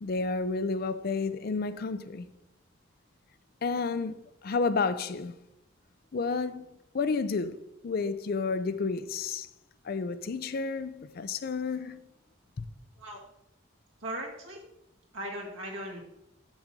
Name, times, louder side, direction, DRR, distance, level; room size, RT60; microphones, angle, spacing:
voice 1, 0.0-2.3 3.6-5.3 6.1-6.7 6.9-9.5 9.8-12.0, left 4 dB, 50° left, 0.4 m, -31 dB
voice 2, 14.0-14.6 15.1-16.0, right 1 dB, 70° right, 2.1 m, -38 dB
6.2 x 5.0 x 6.7 m
head